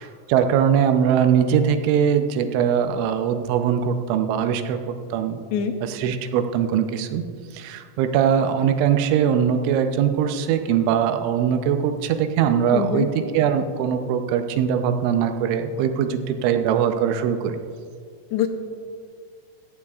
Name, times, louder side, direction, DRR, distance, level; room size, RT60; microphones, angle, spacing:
voice 1, 0.3-5.4 5.8-7.2 7.5-13.1 13.3-17.6, right 8 dB, 90° right, 7 dB, 3.1 m, -21 dB
voice 2, 5.5-5.8 12.7-13.1 18.3-18.5, left 8 dB, 80° left, 7 dB, 2.7 m, -23 dB
16.5 x 14.0 x 2.4 m, 2.2 s
omnidirectional pair, 5.2 m